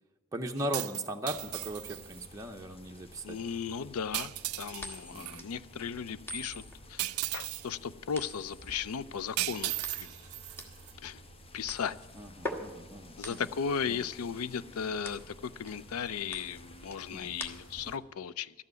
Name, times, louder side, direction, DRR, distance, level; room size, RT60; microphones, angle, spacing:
voice 1, 0.3-3.4 5.1-5.5 12.1-13.5 13.8-14.1 17.1-17.3, right 1 dB, 15° right, 2 dB, 0.7 m, -38 dB
sound 1, 0.6-2.2 4.1-5.4 7.0-7.7 9.4-10.9, right 19 dB, 85° right, 0.4 m, -36 dB
sound 2, 1.3-18.0, equal, 25° left, 0.9 m, -53 dB
voice 2, 3.2-4.3 4.6-6.6 6.9-10.1 11.0-11.2 11.5-12.0 13.2-18.5, left 6 dB, 85° left, 16 dB, 0.5 m, -36 dB
sound 3, 4.8-18.0, left 1 dB, 10° left, 1.3 m, -45 dB
12.5 x 7.6 x 9.3 m, 1.2 s
head